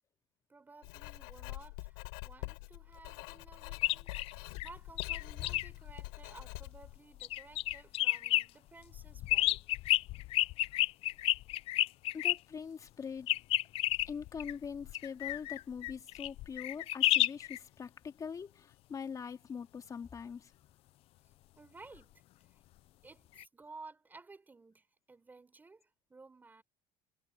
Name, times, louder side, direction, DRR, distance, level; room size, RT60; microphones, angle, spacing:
voice 1, 0.5-9.7 21.5-22.6 23.0-26.6, right 3 dB, 15° right, 4.8 m, -56 dB
Writing, 0.8-7.0, left 27 dB, 90° left, 6.3 m, -46 dB
sound 1, 3.7-6.9 7.2-8.4 8.9-12.4 13.3-17.6 23.4-23.5, left 16 dB, 55° left, 0.6 m, -31 dB
voice 2, 12.1-13.3 14.1-20.5, left 6 dB, 30° left, 2.7 m, -43 dB
supercardioid pair, 115°, 12 cm